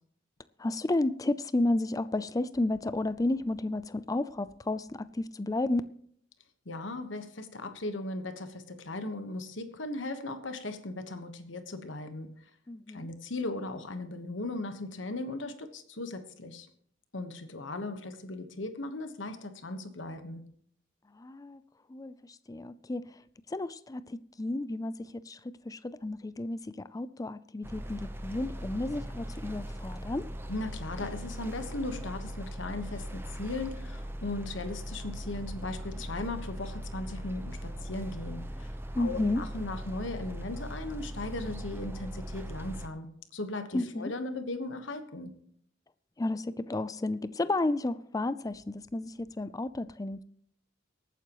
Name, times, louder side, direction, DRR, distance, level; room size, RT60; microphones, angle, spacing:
voice 1, 0.6-5.8 12.7-13.1 21.2-21.6 21.9-22.1 22.5-23.0 23.5-24.9 25.3-25.4 25.7-30.2 39.0-39.4 43.7-44.1 46.2-50.2, left 2 dB, 20° left, 0.4 m, -32 dB
voice 2, 6.6-12.4 12.9-16.7 17.1-20.5 30.5-45.3, left 2 dB, 70° left, 1.3 m, -38 dB
sound 1, 27.6-42.9, equal, 10° right, 0.8 m, -39 dB
23.5 x 9.2 x 3.0 m
head